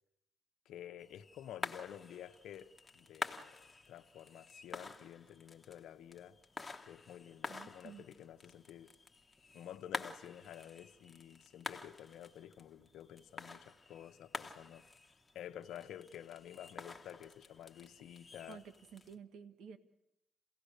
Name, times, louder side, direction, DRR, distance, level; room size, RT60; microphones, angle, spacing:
voice 1, 0.7-6.4 6.8-8.9 9.5-14.9 15.3-18.6, left 10 dB, 80° left, 0.9 m, -51 dB
sound 1, 1.0-19.1, left 3 dB, 20° left, 1.4 m, -49 dB
voice 2, 7.5-8.0 18.5-19.8, right 7 dB, 80° right, 1.6 m, -52 dB
28.5 x 17.0 x 6.6 m
cardioid pair, 90°, 0 cm